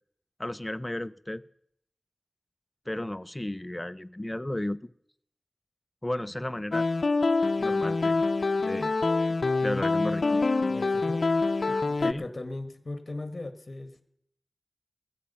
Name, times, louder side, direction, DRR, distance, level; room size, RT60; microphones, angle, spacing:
voice 1, 0.4-1.4 2.9-4.8 6.0-6.9 7.6-8.2 8.6-8.9 9.6-10.4 12.0-12.2, left 1 dB, 20° left, 14 dB, 0.5 m, -33 dB
sound 1, 6.7-12.1, left 3 dB, 75° left, 0.6 m, -25 dB
voice 2, 10.7-14.0, left 2 dB, 45° left, 10 dB, 1.6 m, -39 dB
21.0 x 8.6 x 5.6 m, 0.71 s
wide cardioid pair, 75°, 0 cm